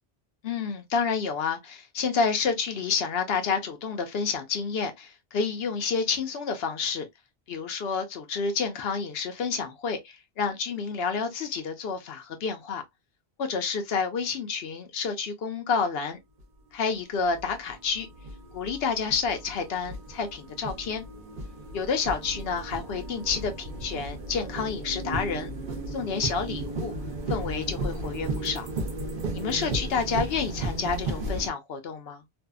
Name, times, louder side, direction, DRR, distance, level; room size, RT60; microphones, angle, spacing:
voice 1, 0.4-7.1 7.5-12.8 13.4-16.2 16.7-18.1 18.5-21.0 21.7-25.5 25.9-26.9 27.3-28.7 29.3-32.2, left 5 dB, 70° left, 0.9 m, -29 dB
sound 1, 16.4-16.5 17.2-31.5, right 2 dB, 55° right, 0.7 m, -35 dB
2.6 x 2.3 x 2.2 m
omnidirectional pair, 1.1 m